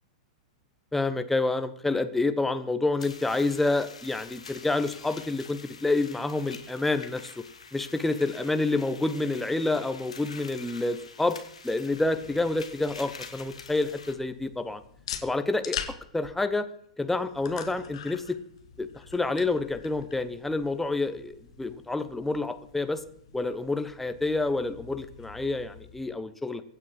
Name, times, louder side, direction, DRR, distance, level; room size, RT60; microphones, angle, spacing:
voice 1, 0.9-7.3 7.7-11.4 11.6-14.8 15.2-15.8 16.1-16.7 17.0-18.4 18.8-23.0 23.3-26.6, left 2 dB, 5° left, 9 dB, 1.3 m, -28 dB
sound 1, 3.0-14.1, left 5 dB, 75° left, 2.3 m, -46 dB
sound 2, 11.8-26.0, left 8 dB, 60° left, 2.4 m, -44 dB
24.0 x 9.4 x 4.8 m, 0.68 s
figure-of-eight pair, 100°, 3 cm